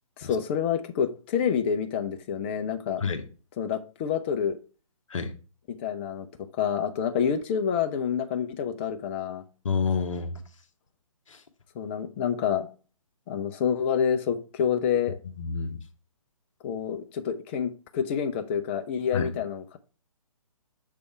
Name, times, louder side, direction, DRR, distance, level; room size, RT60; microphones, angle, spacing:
voice 1, 0.2-3.0 3.6-4.6 5.8-6.3 6.6-9.4 11.7-12.7 13.3-15.2 16.6-19.8, left 7 dB, 20° left, 0.4 m, -28 dB
voice 2, 9.6-10.4 11.3-11.4 15.4-15.8 19.1-19.3, left 5 dB, 60° left, 1.0 m, -28 dB
6.5 x 3.4 x 4.5 m
figure-of-eight pair, 135°, 18 cm